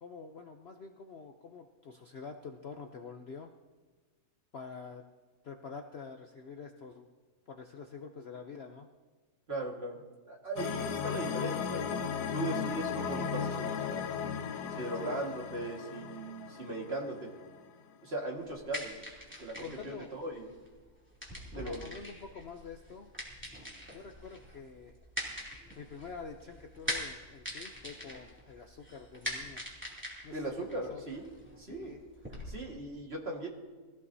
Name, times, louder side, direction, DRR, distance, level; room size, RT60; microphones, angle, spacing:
voice 1, 0.0-3.5 4.5-5.0 5.4-7.1 7.5-8.9 14.9-15.3 19.6-20.1 21.5-23.1 23.9-25.0 25.8-29.6 30.2-31.1 31.6-32.0, left 5 dB, 55° left, 4 dB, 0.8 m, -46 dB
voice 2, 9.5-10.0 10.3-14.0 14.8-17.3 18.0-19.0 19.4-20.5 21.5-21.8 30.3-31.9 32.3-33.5, right 2 dB, 40° right, 0 dB, 2.1 m, -39 dB
sound 1, 10.6-17.6, left 7 dB, 90° left, 1.3 m, -36 dB
sound 2, 18.4-32.4, equal, 5° right, 2.9 m, -43 dB
22.5 x 15.0 x 2.7 m, 1.4 s
omnidirectional pair, 1.7 m